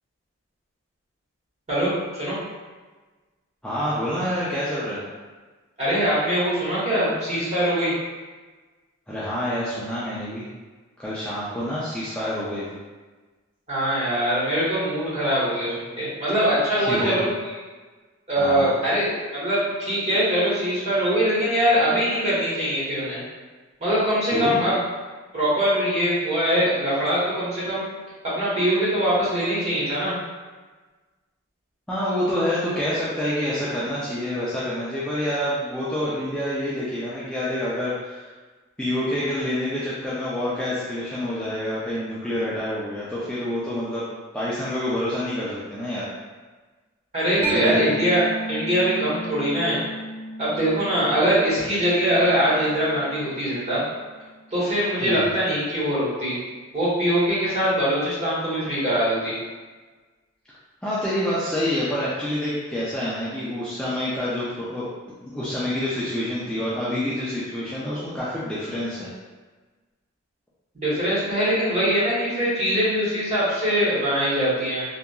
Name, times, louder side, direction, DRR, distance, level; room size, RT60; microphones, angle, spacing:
voice 1, 1.7-2.4 5.8-7.9 13.7-17.3 18.3-23.2 23.8-24.8 25.3-27.8 28.2-30.1 47.1-49.8 50.4-53.8 54.5-56.3 56.7-59.3 70.7-74.8, equal, 30° right, -9 dB, 1.1 m, -22 dB
voice 2, 3.6-5.0 9.1-10.5 11.0-12.8 16.8-17.3 18.4-18.7 24.2-24.6 31.9-38.3 38.8-44.0 44.3-46.1 47.4-47.8 55.0-55.3 60.8-64.9 65.2-69.1, left 1 dB, 5° left, -10 dB, 0.3 m, -27 dB
Mallet percussion, 47.4-54.7, right 2 dB, 70° right, 0.8 m, -35 dB
2.8 x 2.4 x 2.3 m, 1.3 s
head